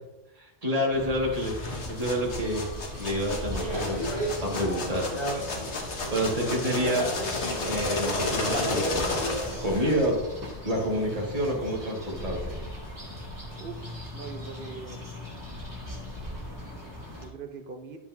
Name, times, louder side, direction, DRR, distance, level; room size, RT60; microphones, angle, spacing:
voice 1, 0.4-2.7 3.0-5.1 6.0-7.1 7.6-9.2 9.6-12.6, equal, 35° right, -3 dB, 2.0 m, -28 dB
sound 1, 0.9-17.3, left 1 dB, 15° right, 2.5 m, -39 dB
sound 2, 1.3-10.1, left 3 dB, 75° left, 1.5 m, -33 dB
sound 3, 3.5-10.0, right 1 dB, 35° left, 1.9 m, -34 dB
voice 2, 14.1-15.0 16.5-18.0, right 5 dB, 55° right, 6 dB, 0.9 m, -42 dB
11.0 x 7.0 x 2.7 m, 0.92 s
omnidirectional pair, 1.2 m